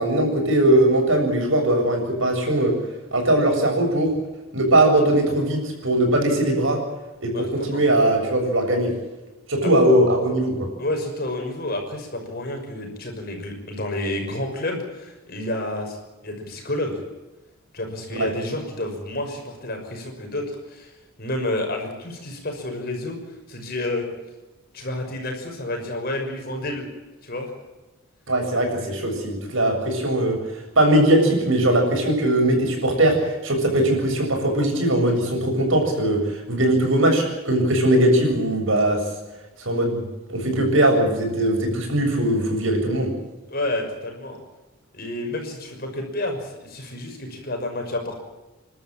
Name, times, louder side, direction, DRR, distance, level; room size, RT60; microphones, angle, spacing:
voice 1, 0.0-2.7 3.1-4.1 4.5-6.8 7.2-8.9 9.5-10.7 18.1-18.3 28.3-30.4 30.8-33.2 33.4-39.0 39.7-43.1, right 1 dB, 65° right, 2 dB, 7.3 m, -20 dB
voice 2, 7.3-7.8 9.6-9.7 10.8-16.0 16.2-17.0 17.7-23.2 23.5-24.1 24.7-26.9 27.2-27.5 43.5-44.4 44.9-48.1, left 1 dB, 45° left, 3 dB, 6.1 m, -30 dB
30.0 x 13.0 x 8.9 m, 1.1 s
head